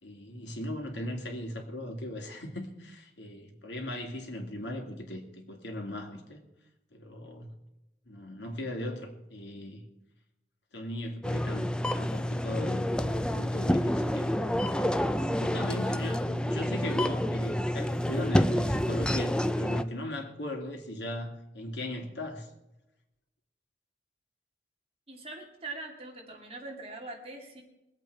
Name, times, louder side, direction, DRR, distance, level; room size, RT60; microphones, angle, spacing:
voice 1, 0.0-6.4 6.9-7.5 8.1-9.8 10.7-14.4 15.4-22.5, left 1 dB, 90° left, 2 dB, 2.6 m, -38 dB
sound 1, 11.2-19.8, left 1 dB, 5° left, 0.4 m, -28 dB
voice 2, 25.1-27.6, right 2 dB, 35° right, 1 dB, 2.4 m, -42 dB
22.5 x 8.3 x 4.8 m, 0.93 s
head